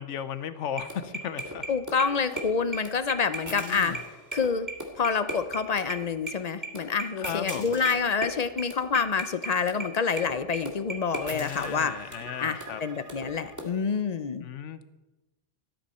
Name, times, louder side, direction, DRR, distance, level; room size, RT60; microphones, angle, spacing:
voice 1, 0.0-1.7 3.5-4.0 7.2-7.7 11.3-12.8 14.4-14.8, left 9 dB, 80° left, 13 dB, 1.1 m, -36 dB
sound 1, 0.5-13.6, right 2 dB, 15° right, 1.9 m, -36 dB
voice 2, 1.7-4.0 4.3-4.7 5.0-11.9 12.4-14.4, left 5 dB, 45° left, 12 dB, 0.6 m, -27 dB
13.5 x 12.5 x 4.2 m, 1.1 s
omnidirectional pair, 1.2 m